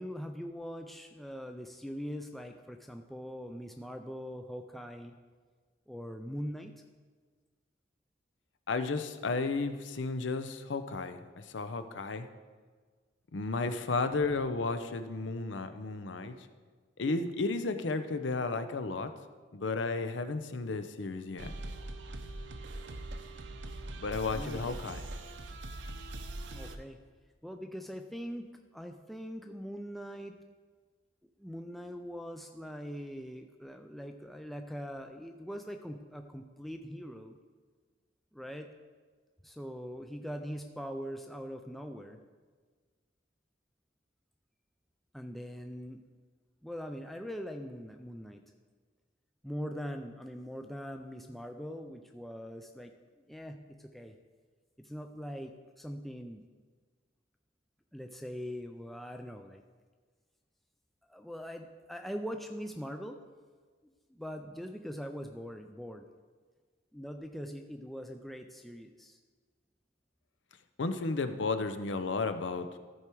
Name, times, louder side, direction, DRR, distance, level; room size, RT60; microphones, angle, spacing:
voice 1, 0.0-5.2 5.9-6.7 24.3-24.8 26.5-27.0 27.4-30.4 31.4-37.4 38.3-38.7 39.4-42.2 45.1-46.0 46.6-48.4 49.4-52.9 53.3-54.1 54.8-56.4 57.9-59.6 61.1-63.2 63.8-66.1 66.9-69.2, equal, ahead, 5 dB, 0.3 m, -42 dB
voice 2, 8.7-12.3 13.3-16.3 17.0-19.1 19.5-21.5 24.0-25.0 70.8-72.7, left 3 dB, 75° left, 10 dB, 0.6 m, -33 dB
sound 1, 21.4-26.8, right 2 dB, 70° right, 0.7 m, -42 dB
14.0 x 4.8 x 4.6 m, 1.5 s
head